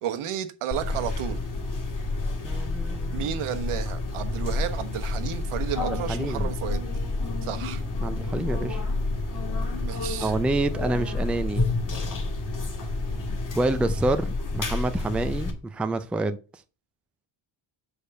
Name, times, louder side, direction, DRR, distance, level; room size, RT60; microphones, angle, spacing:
voice 1, 0.0-1.4 3.1-6.8 7.4-7.8 9.8-10.3, right 10 dB, 85° right, 1.2 m, -32 dB
sound 1, 0.7-15.5, left 2 dB, 40° left, 2.0 m, -29 dB
voice 2, 2.4-3.3 6.1-6.5 8.0-8.8 10.2-11.6 13.5-16.4, right 2 dB, 5° right, 0.3 m, -27 dB
6.8 x 5.0 x 6.3 m
cardioid pair, 155°, 49 cm